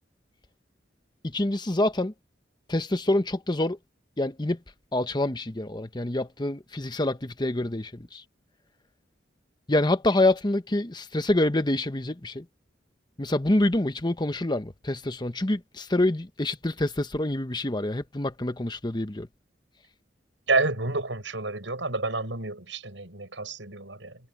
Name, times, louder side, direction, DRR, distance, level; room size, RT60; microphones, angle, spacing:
voice 1, 1.2-2.1 2.7-3.8 4.2-4.6 4.9-8.2 9.7-12.4 13.2-19.3, left 1 dB, 25° left, 1.0 m, -26 dB
voice 2, 20.5-24.2, right 3 dB, 85° right, 7.1 m, -29 dB
head